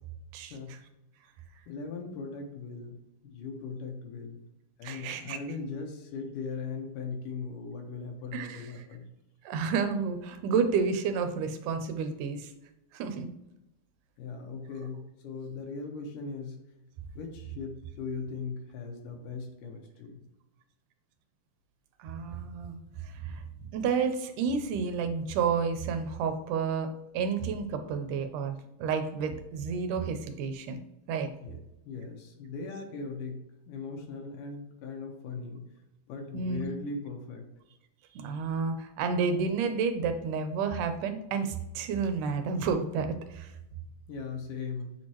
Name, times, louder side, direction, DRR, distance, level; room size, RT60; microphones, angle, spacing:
voice 1, 0.5-0.9 1.7-4.4 4.8-9.1 14.2-16.6 17.2-20.3 31.4-31.6 31.9-35.7 36.1-37.5 44.1-45.0, left 4 dB, 80° left, 2 dB, 2.7 m, -39 dB
voice 2, 4.8-5.4 8.3-8.7 9.5-12.5 12.9-13.3 22.0-23.4 23.7-26.9 27.1-30.8 31.1-31.3 36.3-36.7 38.2-43.5, right 5 dB, 80° right, 7 dB, 2.3 m, -30 dB
7.9 x 4.5 x 3.0 m, 0.90 s
omnidirectional pair, 3.7 m